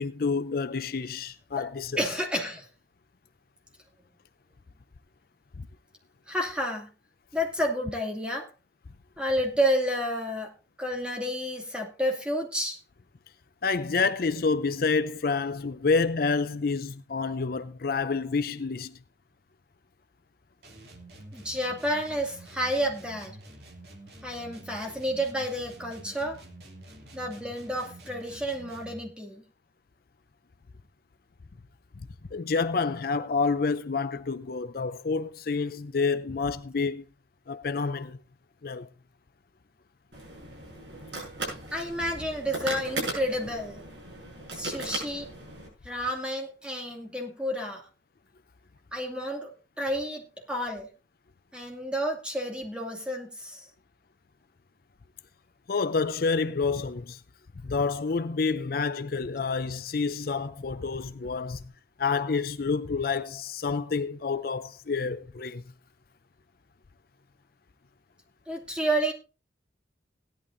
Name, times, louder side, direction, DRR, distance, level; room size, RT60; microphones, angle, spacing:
voice 1, 0.0-2.0 13.6-19.0 32.3-37.0 37.5-38.2 38.6-38.9 55.7-57.2 57.6-61.6 62.0-65.6, left 4 dB, 55° left, 0.5 m, -28 dB
voice 2, 2.0-2.7 6.3-6.9 7.3-8.5 9.2-10.5 10.8-12.8 21.3-23.4 24.2-26.4 27.1-29.4 41.7-43.8 44.5-45.3 45.8-47.9 48.9-49.5 49.8-50.2 50.5-50.9 51.5-53.7 68.5-69.1, equal, 5° right, 2.4 m, -30 dB
sound 1, 20.6-29.1, right 1 dB, 60° right, 2.6 m, -48 dB
sound 2, 40.1-45.7, right 2 dB, 80° right, 7.3 m, -37 dB
17.0 x 11.5 x 2.6 m
head